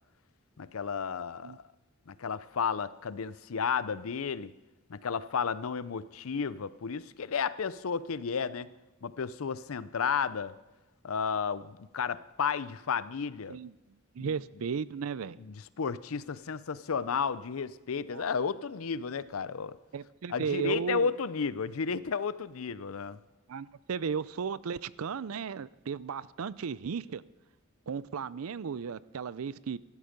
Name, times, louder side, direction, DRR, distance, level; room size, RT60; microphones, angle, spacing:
voice 1, 0.6-1.6 2.1-4.5 4.9-8.7 9.0-10.5 11.0-13.6 14.2-14.3 15.4-19.8 20.3-23.2, left 6 dB, 80° left, 0.6 m, -33 dB
voice 2, 14.1-15.4 18.1-18.2 19.9-21.1 23.5-27.2 27.9-29.8, right 6 dB, 85° right, 0.5 m, -35 dB
15.5 x 12.5 x 5.2 m
head